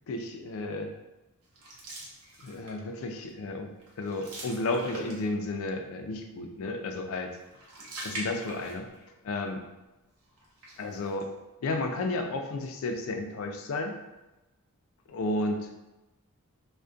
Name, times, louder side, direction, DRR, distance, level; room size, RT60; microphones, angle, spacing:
voice 1, 0.1-0.9 2.4-3.7 4.0-7.3 8.0-8.9 9.2-9.6 10.8-11.3 11.6-14.0 15.1-15.7, left 2 dB, 65° left, 4 dB, 0.3 m, -32 dB
sound 1, 1.5-2.9 3.3-3.5 3.8-5.5 7.3-9.1 9.4-9.5 10.4-11.2, right 1 dB, 80° right, 0.6 m, -42 dB
2.5 x 2.1 x 2.3 m, 1.0 s
head